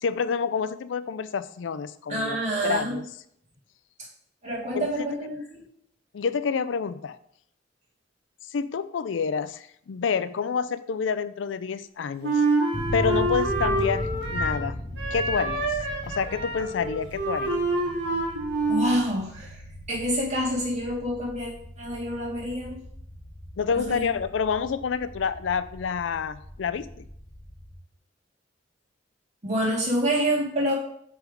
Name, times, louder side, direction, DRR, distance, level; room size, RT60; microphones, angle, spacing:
voice 1, 0.0-2.4 2.6-3.0 4.7-5.1 6.1-7.2 8.5-12.4 12.9-14.8 15.1-15.8 16.0-17.6 23.6-27.0, left 6 dB, 90° left, 14 dB, 0.4 m, -28 dB
voice 2, 2.1-3.0 4.4-5.6 18.7-19.6 19.9-21.5 21.8-22.8 23.7-24.0 29.4-30.7, equal, 40° right, -4 dB, 2.2 m, -27 dB
Wind instrument woodwind instrument, 12.2-14.7 15.0-19.0, right 2 dB, 85° right, 1.6 m, -27 dB
sound 1, 12.7-27.7, equal, 30° left, 0.9 m, -38 dB
6.2 x 3.6 x 5.0 m, 0.70 s
head